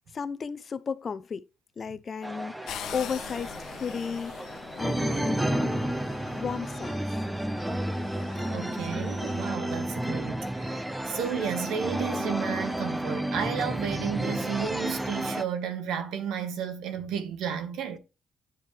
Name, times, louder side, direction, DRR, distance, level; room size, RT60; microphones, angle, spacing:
voice 1, 0.1-1.5 1.8-5.9 6.3-7.2, left 6 dB, 45° left, 0.6 m, -34 dB
sound 1, 2.2-15.4, right 1 dB, 10° right, 0.6 m, -31 dB
sound 2, 2.7-9.5, left 9 dB, 80° left, 0.8 m, -44 dB
voice 2, 8.5-18.0, right 7 dB, 85° right, 1.6 m, -32 dB
9.9 x 4.5 x 3.4 m
cardioid pair, 90°, 0 cm